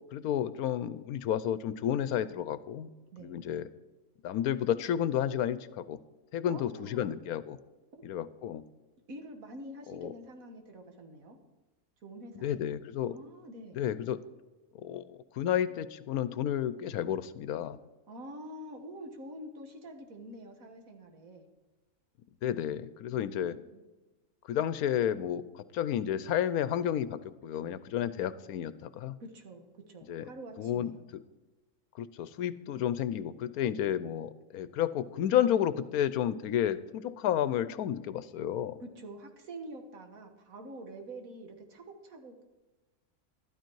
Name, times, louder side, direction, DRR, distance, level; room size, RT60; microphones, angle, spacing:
voice 1, 0.1-2.9 3.2-3.7 4.2-6.0 6.3-7.6 8.0-8.6 10.0-10.1 12.4-13.2 13.7-14.2 14.8-17.8 22.4-23.6 24.5-29.2 30.1-30.2 30.6-30.9 32.0-38.8, left 10 dB, 80° left, 15 dB, 1.1 m, -31 dB
voice 2, 6.5-7.1 8.0-8.1 9.1-11.4 12.0-12.6 13.0-13.8 18.1-21.5 23.1-23.8 29.2-31.0 38.8-42.5, right 1 dB, 65° right, 4 dB, 1.9 m, -46 dB
12.5 x 12.0 x 4.7 m, 1.2 s
omnidirectional pair, 1.6 m